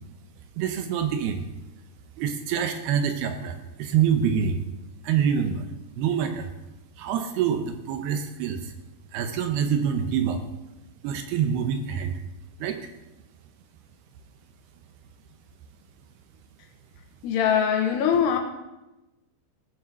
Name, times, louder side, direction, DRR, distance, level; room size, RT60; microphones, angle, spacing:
voice 1, 0.6-1.4 2.2-4.6 5.0-5.6 5.9-6.5 7.0-8.7 9.1-10.4 11.0-12.2 12.6-12.8, right 8 dB, 75° right, 7 dB, 2.7 m, -26 dB
voice 2, 17.2-18.4, left 8 dB, 75° left, 3 dB, 3.3 m, -22 dB
16.5 x 7.1 x 6.3 m, 0.99 s
omnidirectional pair, 5.1 m